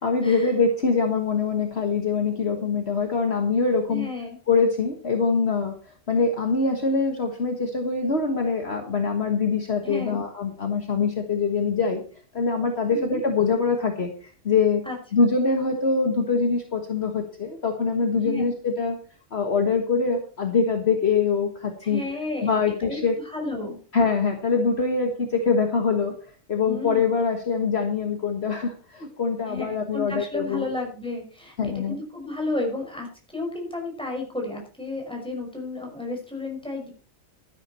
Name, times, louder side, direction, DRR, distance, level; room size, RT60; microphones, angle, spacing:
voice 1, 0.0-4.1 4.5-5.7 6.1-12.0 12.3-14.8 15.1-19.0 19.3-22.0 22.4-23.2 23.9-26.1 26.5-30.7 31.6-32.0, left 4 dB, 50° left, 3 dB, 1.7 m, -24 dB
voice 2, 3.9-4.4 9.8-10.2 12.9-13.2 14.8-15.0 18.2-18.5 21.8-23.8 26.7-27.0 29.5-36.9, left 2 dB, 5° left, 0 dB, 5.7 m, -32 dB
12.5 x 11.5 x 4.4 m, 0.40 s
omnidirectional pair, 1.4 m